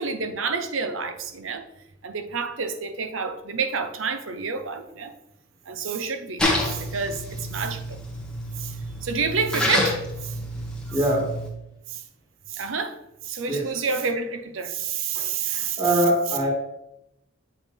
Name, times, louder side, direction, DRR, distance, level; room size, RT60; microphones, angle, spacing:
voice 1, 0.0-1.7 2.0-5.1 5.7-8.0 8.6-8.8 9.0-10.0 10.2-10.3 10.9-11.0 11.9-12.0 12.5-13.0 13.2-16.0, right 5 dB, 75° right, 0.7 m, -29 dB
Splash splatter, 6.4-11.5, left 1 dB, 5° left, 1.3 m, -28 dB
voice 2, 10.9-11.2 13.5-13.7 15.2-16.5, right 1 dB, 20° right, 2.1 m, -23 dB
7.1 x 5.2 x 3.2 m
head